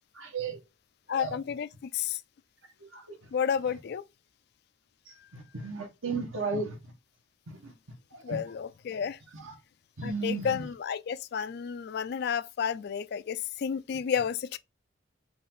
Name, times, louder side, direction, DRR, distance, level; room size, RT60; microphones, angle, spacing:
voice 1, 0.2-0.6 1.2-1.4 2.9-3.0 5.3-6.8 7.6-7.7 8.1-8.4 9.4-9.5 10.0-10.5, right 4 dB, 75° right, 1.3 m, -34 dB
voice 2, 1.1-2.2 3.3-4.0 8.2-9.2 10.0-14.6, left 7 dB, 50° left, 0.3 m, -31 dB
5.2 x 2.6 x 3.8 m
head